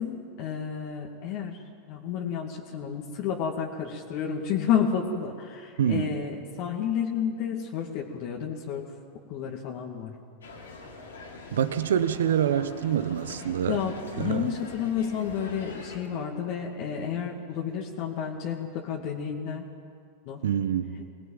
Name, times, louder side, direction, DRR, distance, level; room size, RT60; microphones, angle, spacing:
voice 1, 0.0-1.6 1.9-8.9 9.3-10.1 13.7-19.7 20.3-20.4, left 7 dB, 55° left, 0 dB, 2.4 m, -31 dB
voice 2, 5.8-6.1 11.5-13.8 14.2-14.5 20.4-20.9, right 9 dB, 75° right, 12 dB, 1.2 m, -26 dB
sound 1, 10.4-16.0, left 3 dB, 85° left, 4.2 m, -44 dB
24.5 x 19.0 x 9.1 m, 2.3 s
hypercardioid pair, 95°, 0 cm